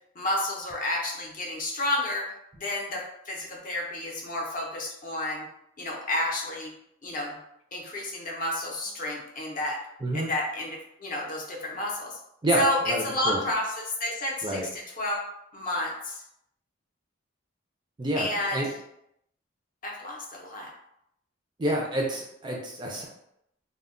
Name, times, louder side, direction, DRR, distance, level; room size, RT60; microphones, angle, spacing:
voice 1, 0.2-5.4 5.8-6.7 7.0-7.4 7.7-9.8 10.1-12.2 12.6-15.2 15.5-16.2 18.2-18.6 19.8-20.7, left 1 dB, 40° left, -1 dB, 0.5 m, -31 dB
voice 2, 10.0-10.3 12.4-13.4 14.4-14.7 18.0-18.7 21.6-23.0, right 1 dB, 20° right, -1 dB, 0.3 m, -28 dB
2.1 x 2.0 x 3.6 m, 0.78 s
head